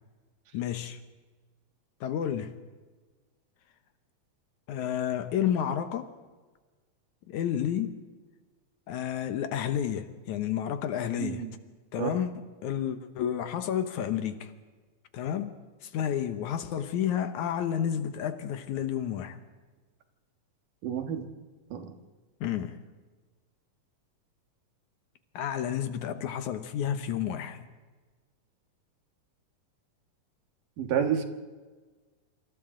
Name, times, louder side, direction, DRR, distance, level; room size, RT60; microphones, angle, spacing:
voice 1, 0.5-1.0 2.0-2.6 4.7-6.1 7.3-8.0 8.9-11.5 11.9-14.5 15.1-19.4 22.4-22.8 25.4-27.7, left 9 dB, 70° left, 9 dB, 2.3 m, -31 dB
voice 2, 11.2-11.5 12.0-12.2 20.8-21.3 21.7-21.9 30.8-31.2, right 8 dB, 80° right, 5 dB, 3.2 m, -29 dB
28.0 x 26.0 x 3.8 m, 1.3 s
omnidirectional pair, 3.8 m